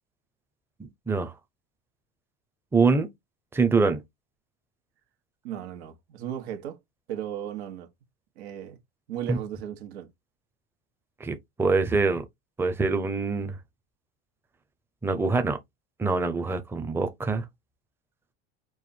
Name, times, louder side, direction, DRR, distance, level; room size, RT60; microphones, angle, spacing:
voice 1, 2.7-3.1 3.5-4.0 9.3-9.4 11.2-12.2 12.6-13.6 15.0-15.6 16.0-17.4, right 4 dB, 5° right, 0.7 m, -24 dB
voice 2, 5.4-6.8 7.1-7.9 8.4-8.8 9.1-10.1, right 10 dB, 80° right, 1.5 m, -35 dB
4.7 x 2.5 x 4.3 m
supercardioid pair, 120°, 31 cm